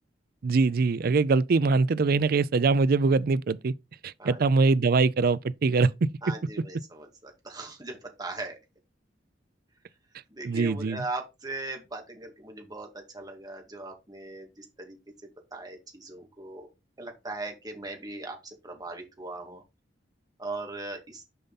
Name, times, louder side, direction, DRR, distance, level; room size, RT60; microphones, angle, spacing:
voice 1, 0.4-3.7 4.0-6.1 10.4-11.0, right 4 dB, 55° right, 0.4 m, -23 dB
voice 2, 6.2-8.6 10.3-16.7 17.0-19.6 20.4-21.2, right 2 dB, 20° right, 2.1 m, -39 dB
6.9 x 5.4 x 4.1 m
head